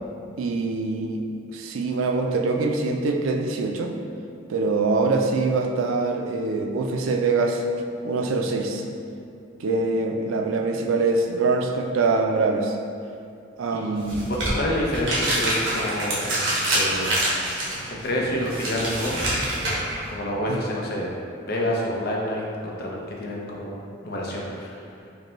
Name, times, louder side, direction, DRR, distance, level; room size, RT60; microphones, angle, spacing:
voice 1, 0.4-1.2 1.5-3.9 4.5-7.6 8.0-8.8 9.6-12.8 13.6-14.3 20.5-20.6, right 3 dB, 90° right, 3 dB, 0.4 m, -24 dB
sound 1, 14.0-20.1, right 1 dB, 65° right, 1.0 m, -26 dB
voice 2, 14.5-16.3 16.7-17.1 17.9-19.2 20.1-21.1 21.4-24.8, left 1 dB, 50° left, -2 dB, 0.6 m, -28 dB
5.1 x 2.2 x 3.0 m, 2.4 s
head